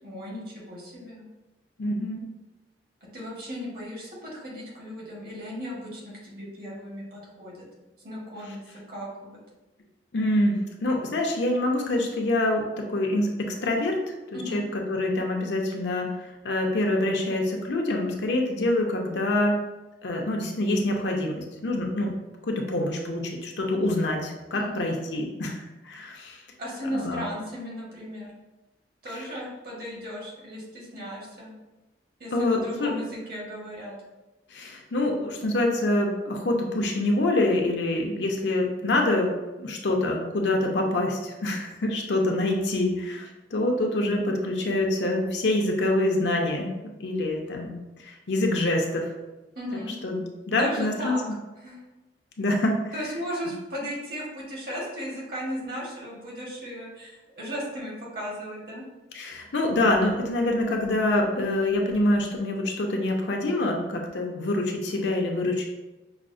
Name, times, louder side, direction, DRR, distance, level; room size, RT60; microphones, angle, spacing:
voice 1, 0.0-1.2 3.1-7.7 8.0-8.6 8.9-9.4 14.3-14.6 24.5-24.9 26.6-28.3 29.0-31.5 32.2-33.9 49.5-49.9 50.5-51.2 51.6-51.8 52.9-58.8, equal, 55° right, -4 dB, 1.3 m, -36 dB
voice 2, 1.8-2.2 10.1-14.0 14.3-14.6 14.9-19.6 20.0-22.2 22.5-26.4 26.9-27.2 29.2-29.3 32.3-32.9 34.5-39.3 39.6-46.7 47.0-49.1 50.0-51.2 52.4-52.9 59.1-65.7, left 1 dB, 80° left, 1 dB, 0.7 m, -26 dB
5.7 x 2.1 x 2.5 m, 1.1 s
head